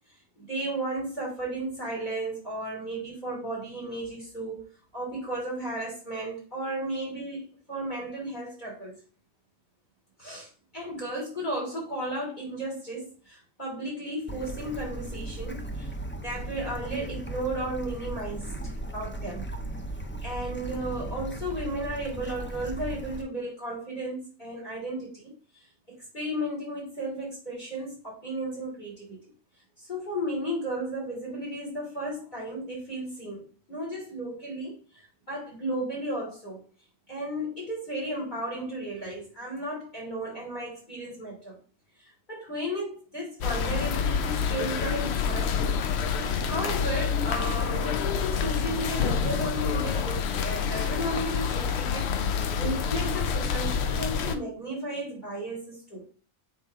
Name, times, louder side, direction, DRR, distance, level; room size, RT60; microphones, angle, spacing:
voice 1, 0.3-4.7 4.9-7.4 7.7-9.0 10.2-15.9 16.2-18.5 18.9-19.5 20.2-25.4 25.9-29.2 29.8-35.0 35.3-36.6 37.1-41.6 42.0-45.8 46.4-52.1 52.6-56.1, right 1 dB, 35° left, -3 dB, 3.2 m, -34 dB
Bird / Stream, 14.3-23.2, right 1 dB, 15° left, 0.4 m, -37 dB
sound 1, 43.4-54.4, left 6 dB, 60° left, 0.8 m, -27 dB
7.5 x 4.3 x 3.6 m, 0.39 s
omnidirectional pair, 1.4 m